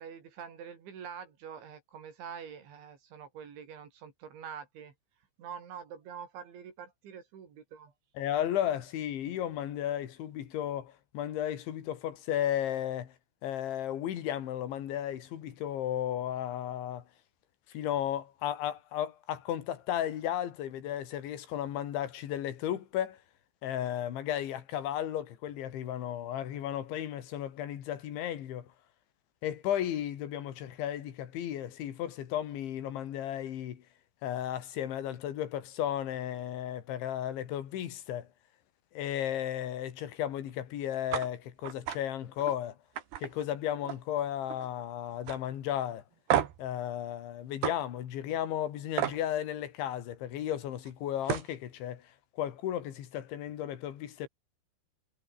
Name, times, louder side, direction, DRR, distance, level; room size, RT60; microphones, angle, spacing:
voice 1, 0.0-4.9 5.4-7.9, right 7 dB, 85° right, 6.5 m, -45 dB
voice 2, 8.2-13.2 13.4-17.0 17.7-23.2 23.6-28.7 29.4-33.8 34.2-38.3 38.9-42.8 43.2-46.0 46.6-54.3, left 11 dB, 85° left, 4.7 m, -34 dB
sound 1, 41.1-41.3 41.6-42.0 42.4-42.6 43.0-44.1 44.4-44.8 45.3-45.4 46.3-46.7 47.6-47.8 49.0-49.2 50.9-51.0 51.2-51.5, right 11 dB, 65° right, 3.9 m, -31 dB
omnidirectional pair, 5.2 m